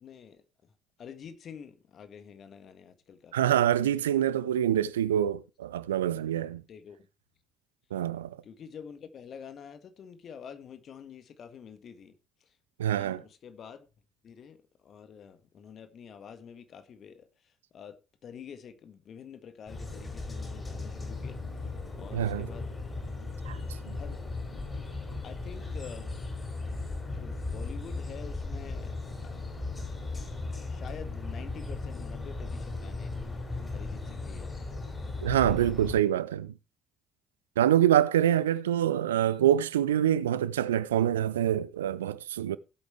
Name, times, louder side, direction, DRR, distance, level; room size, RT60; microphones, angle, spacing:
voice 1, 0.0-0.4 1.0-3.7 6.7-7.0 8.4-12.1 12.9-13.8 14.2-14.6 14.8-17.3 17.7-22.7 23.0-23.3 23.9-24.2 25.2-26.1 26.7-29.0 29.2-29.4 30.7-33.4 33.7-34.8, left 7 dB, 50° left, 1.7 m, -47 dB
voice 2, 3.3-6.6 7.9-8.4 12.8-13.2 22.1-22.5 23.5-23.6 23.9-24.0 35.2-36.5 37.6-42.6, right 11 dB, 75° right, 0.5 m, -26 dB
sound 1, 19.7-36.0, left 3 dB, 25° left, 6.4 m, -37 dB
16.5 x 8.4 x 3.3 m
figure-of-eight pair, 45°, 0 cm